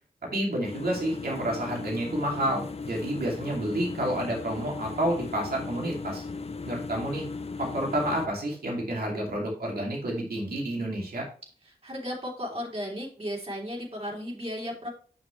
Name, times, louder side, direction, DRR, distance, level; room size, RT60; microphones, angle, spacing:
voice 1, 0.3-6.2 6.6-7.2 7.6-11.2, right 1 dB, 70° right, -2 dB, 2.8 m, -29 dB
sound 1, 0.6-8.3, left 4 dB, 40° left, 0.7 m, -37 dB
voice 2, 11.6-14.9, equal, 40° right, -2 dB, 3.3 m, -35 dB
7.0 x 6.2 x 3.2 m, 0.41 s
cardioid pair, 70°, 16 cm